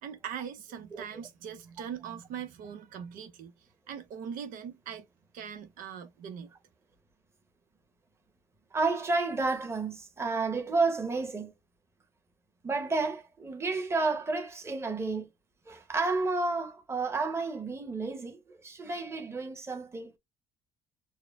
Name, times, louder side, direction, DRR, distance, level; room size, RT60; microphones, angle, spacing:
voice 1, 0.0-3.5 3.9-5.1 5.3-6.5, right 8 dB, 75° right, 1.0 m, -41 dB
voice 2, 8.7-11.5 12.6-15.3 15.7-20.2, right 3 dB, 20° right, 1.2 m, -31 dB
4.7 x 2.2 x 3.4 m
cardioid pair, 120°, 14 cm